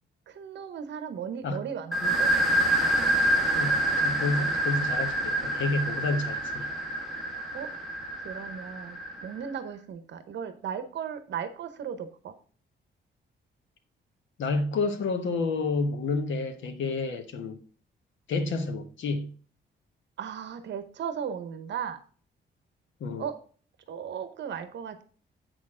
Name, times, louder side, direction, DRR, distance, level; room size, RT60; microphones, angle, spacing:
voice 1, 0.3-2.3 7.5-7.7 8.2-12.3 20.2-22.0 23.2-23.4 23.9-25.0, right 8 dB, 70° right, 0.9 m, -36 dB
sound 1, 1.9-9.4, right 1 dB, ahead, 1.9 m, -27 dB
voice 2, 3.5-6.7 14.4-17.6 18.3-19.3 23.0-23.3, left 3 dB, 80° left, 1.3 m, -30 dB
8.3 x 6.5 x 3.7 m
wide cardioid pair, 150°, 19 cm